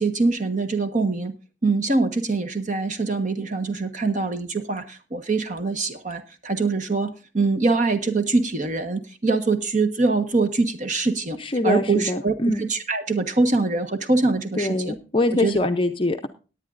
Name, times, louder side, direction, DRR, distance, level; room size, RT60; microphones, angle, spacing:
voice 1, 0.0-1.3 1.6-11.4 11.6-15.0 15.4-15.6, right 3 dB, 40° right, 8 dB, 1.2 m, -23 dB
voice 2, 11.4-12.7 14.6-16.3, left 2 dB, 25° left, 6 dB, 0.6 m, -23 dB
18.0 x 9.7 x 2.5 m, 0.34 s
head